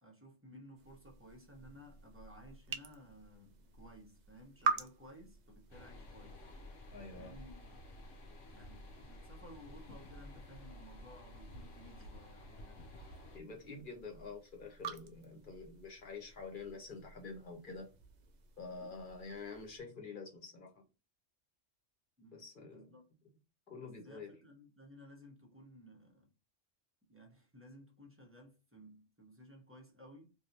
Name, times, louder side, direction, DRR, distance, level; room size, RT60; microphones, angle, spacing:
voice 1, 0.0-6.4 7.1-7.8 8.5-12.9 22.2-23.1 23.7-26.3 27.0-30.3, equal, 10° right, 0.9 m, -57 dB
sound 1, 0.8-19.8, right 5 dB, 75° right, 0.4 m, -47 dB
sound 2, 5.7-13.4, left 1 dB, 70° left, 1.2 m, -52 dB
voice 2, 6.9-7.3 13.3-17.9 18.6-20.8 22.3-22.9 23.7-24.3, left 4 dB, 45° left, 1.1 m, -47 dB
3.2 x 2.8 x 2.7 m
omnidirectional pair, 1.3 m